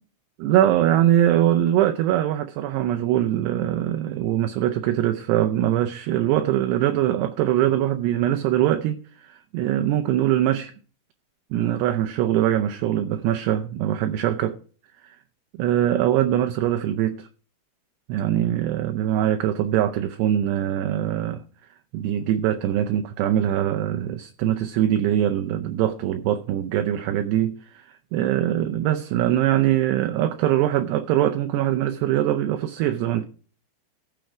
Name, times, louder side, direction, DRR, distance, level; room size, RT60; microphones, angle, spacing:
voice 1, 0.4-10.7 11.5-14.6 15.5-17.3 18.1-21.4 21.9-33.2, right 12 dB, 80° right, 2.6 m, -22 dB
15.0 x 6.5 x 4.8 m
omnidirectional pair, 5.1 m